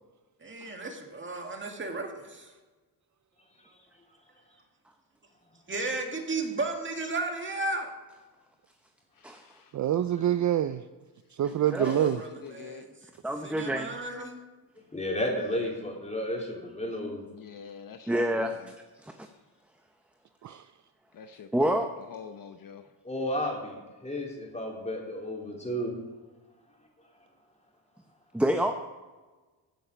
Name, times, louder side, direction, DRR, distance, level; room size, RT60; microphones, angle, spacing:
voice 1, 0.4-2.5 5.7-7.9 11.6-13.1 13.4-14.4, right 3 dB, 25° right, 2.1 m, -34 dB
voice 2, 9.2-9.7 11.8-12.9 17.3-18.7 21.1-21.7 22.1-22.8, left 7 dB, 50° left, 0.8 m, -44 dB
voice 3, 9.7-10.8 11.4-12.2 20.4-20.6, right 11 dB, 40° right, 0.5 m, -26 dB
voice 4, 11.4-12.1 13.2-14.3 18.1-18.7 19.0-19.3 21.5-21.9 28.3-28.7, right 1 dB, 5° right, 0.7 m, -28 dB
voice 5, 14.9-17.2 23.0-23.8 24.0-25.9, left 1 dB, 15° left, 3.7 m, -32 dB
15.5 x 7.0 x 5.1 m
cardioid pair, 85°, 45 cm